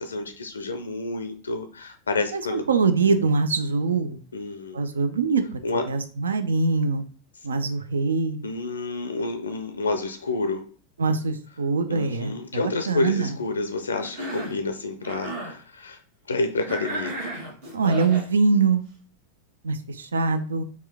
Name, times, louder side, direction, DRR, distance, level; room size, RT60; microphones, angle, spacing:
voice 1, 0.0-2.6 4.3-4.8 5.6-5.9 8.4-10.6 11.9-16.0 16.3-17.1, left 3 dB, 75° left, 7 dB, 0.4 m, -29 dB
voice 2, 2.3-4.2 4.7-5.6 5.9-7.0 7.4-8.4 11.0-13.3 17.7-18.8 19.6-20.6, right 4 dB, 70° right, 10 dB, 0.4 m, -23 dB
Cough, 14.0-14.6 15.0-15.6 16.7-18.3, right 1 dB, 50° right, 1.3 m, -33 dB
4.3 x 2.3 x 3.3 m, 0.41 s
figure-of-eight pair, 90°, 0 cm